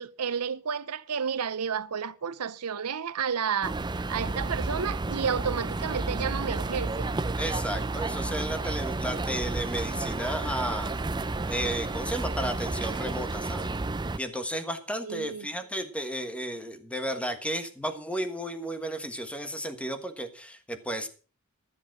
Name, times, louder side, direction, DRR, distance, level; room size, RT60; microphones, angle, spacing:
voice 1, 0.0-3.8 4.1-7.1 15.0-15.5, right 7 dB, 85° right, 0.7 m, -31 dB
sound 1, 3.6-14.2, right 2 dB, 20° right, 0.5 m, -31 dB
voice 2, 7.4-11.0 11.5-13.7 14.2-21.1, equal, 5° left, 1.4 m, -33 dB
13.5 x 7.2 x 6.1 m
head